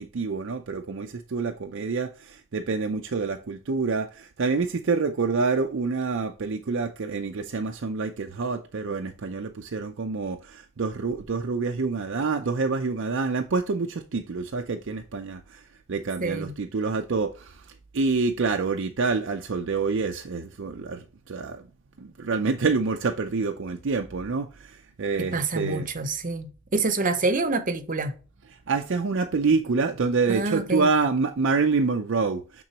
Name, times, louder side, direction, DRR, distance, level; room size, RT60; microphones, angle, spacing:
voice 1, 0.0-15.6 15.9-21.6 22.0-25.9 28.7-32.6, right 4 dB, 55° right, 0.5 m, -27 dB
voice 2, 16.2-16.5 25.2-28.1 30.3-30.9, right 3 dB, 35° right, 0.8 m, -27 dB
8.8 x 3.8 x 2.9 m
head